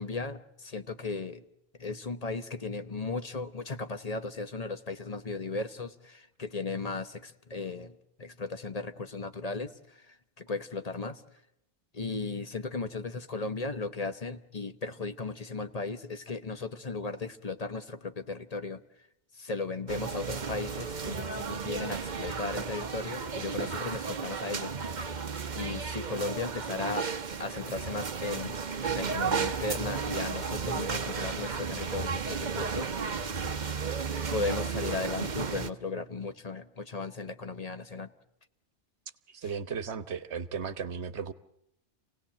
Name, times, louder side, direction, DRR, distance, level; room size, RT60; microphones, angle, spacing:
voice 1, 0.0-1.4 1.8-11.2 11.9-18.8 19.3-25.0 25.5-27.1 27.4-28.6 28.9-32.9 34.3-38.1, left 3 dB, 35° left, 1.0 m, -36 dB
sound 1, 19.9-35.7, right 5 dB, 45° right, 1.0 m, -34 dB
voice 2, 39.3-41.3, right 6 dB, 75° right, 1.3 m, -35 dB
27.5 x 18.0 x 7.6 m
omnidirectional pair, 1.2 m